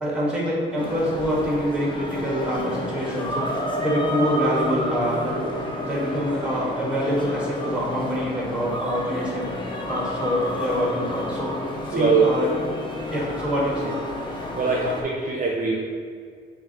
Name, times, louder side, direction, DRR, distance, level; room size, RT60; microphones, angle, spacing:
voice 1, 0.0-9.5 9.9-11.5 11.9-12.6 13.1-13.9, equal, 5° right, -5 dB, 1.5 m, -26 dB
sound 1, 0.8-15.0, left 1 dB, 25° left, 0.7 m, -30 dB
voice 2, 11.9-12.3 14.3-15.8, right 5 dB, 45° right, -2 dB, 0.6 m, -22 dB
5.6 x 2.6 x 2.9 m, 2.1 s
cardioid pair, 90°, 20 cm